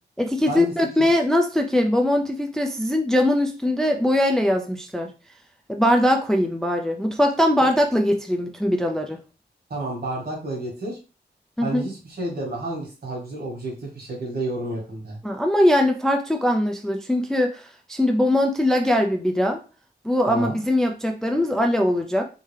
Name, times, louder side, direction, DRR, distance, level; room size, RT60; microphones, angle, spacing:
voice 1, 0.2-5.1 5.7-9.2 11.6-11.9 15.2-19.6 20.0-22.2, left 1 dB, 5° left, 4 dB, 0.3 m, -21 dB
voice 2, 9.7-11.0 11.6-15.2 20.3-20.6, right 1 dB, 65° right, -2 dB, 1.7 m, -30 dB
3.7 x 2.6 x 3.2 m, 0.34 s
wide cardioid pair, 155°, 18 cm